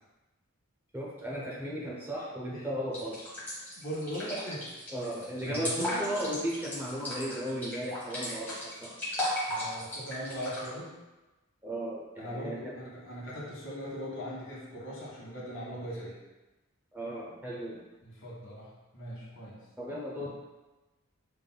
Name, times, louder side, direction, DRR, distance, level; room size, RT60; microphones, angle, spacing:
voice 1, 0.9-3.2 4.9-9.0 11.6-12.7 16.9-17.8 19.8-20.3, right 1 dB, 10° right, -5 dB, 0.6 m, -36 dB
sound 1, 2.9-10.7, left 1 dB, 10° left, 1.3 m, -36 dB
voice 2, 3.8-4.7 5.4-6.0 9.5-11.0 12.2-16.2 18.0-19.6 20.2-20.3, equal, 60° left, -5 dB, 1.3 m, -40 dB
5.6 x 3.4 x 2.2 m, 1.1 s
head